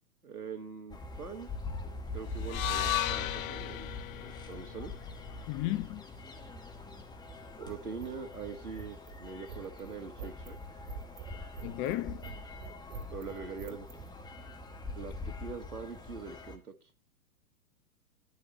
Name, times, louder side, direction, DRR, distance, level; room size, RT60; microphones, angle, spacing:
voice 1, 0.2-1.5 2.1-4.9 7.6-10.6 13.1-13.9 15.0-16.8, right 5 dB, 90° right, 1.8 m, -43 dB
sound 1, 0.9-16.6, left 2 dB, 10° left, 1.2 m, -43 dB
sound 2, 2.4-6.6, left 12 dB, 65° left, 0.6 m, -36 dB
voice 2, 5.5-6.0 11.6-12.3, left 15 dB, 30° left, 0.8 m, -34 dB
sound 3, 7.2-14.1, right 6 dB, 55° right, 2.7 m, -46 dB
10.0 x 6.1 x 8.5 m
hypercardioid pair, 110°, 44 cm